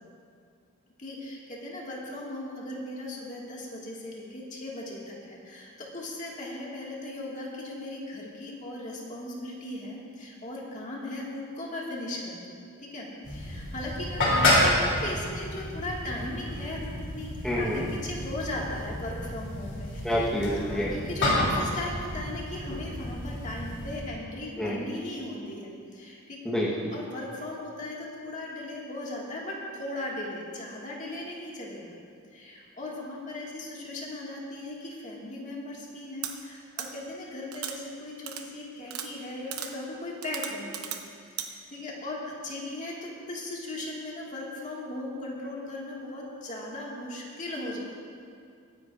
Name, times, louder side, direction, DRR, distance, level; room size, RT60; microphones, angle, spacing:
voice 1, 1.0-17.3 17.6-20.2 20.5-26.4 26.9-32.0 32.3-41.1 41.3-47.8, left 1 dB, 35° left, -3 dB, 2.0 m, -38 dB
sound 1, 13.2-24.0, left 1 dB, 55° left, 3.1 m, -29 dB
voice 2, 17.4-17.8 20.0-20.9 24.6-24.8 26.4-26.9, equal, 5° left, -7 dB, 1.2 m, -28 dB
sound 2, 36.2-36.3 36.8-36.9 37.5-37.7 38.3-38.4 38.9-39.1 39.5-39.7 40.2-41.0 41.4-41.5, right 9 dB, 75° right, 1.0 m, -35 dB
23.0 x 10.5 x 2.5 m, 2.3 s
head